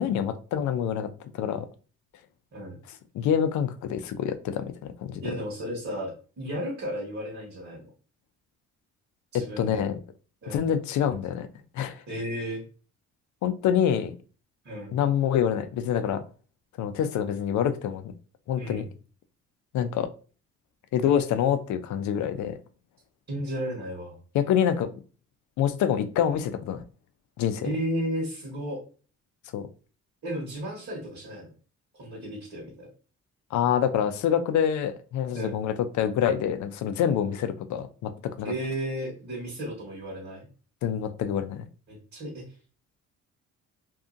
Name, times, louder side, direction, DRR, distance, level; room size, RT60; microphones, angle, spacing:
voice 1, 0.0-1.7 3.1-5.2 9.3-10.0 10.5-11.5 11.7-12.0 13.4-14.1 14.9-16.2 16.8-18.0 18.5-18.9 19.7-20.1 20.9-22.6 24.3-24.9 25.6-26.8 27.4-27.7 29.5-29.7 33.5-38.5 40.8-41.6, left 9 dB, 70° left, 10 dB, 0.5 m, -26 dB
voice 2, 5.2-7.8 9.3-9.8 10.4-10.6 12.1-12.6 14.6-14.9 18.6-18.8 23.3-24.2 27.6-28.8 30.2-31.5 31.9-32.9 35.3-35.6 38.4-40.5 41.9-42.4, equal, 50° right, -4 dB, 1.4 m, -33 dB
2.7 x 2.4 x 2.5 m, 0.38 s
cardioid pair, 90°, 30 cm